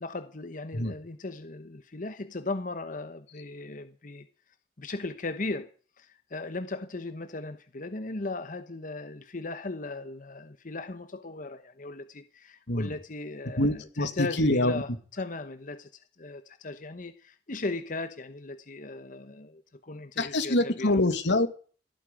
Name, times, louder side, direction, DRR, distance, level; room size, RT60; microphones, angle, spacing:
voice 1, 0.0-4.3 4.8-5.7 6.0-21.0, left 3 dB, 50° left, 1.1 m, -37 dB
voice 2, 13.6-14.8 20.2-21.5, left 1 dB, 85° left, 2.3 m, -25 dB
16.5 x 9.3 x 9.1 m
head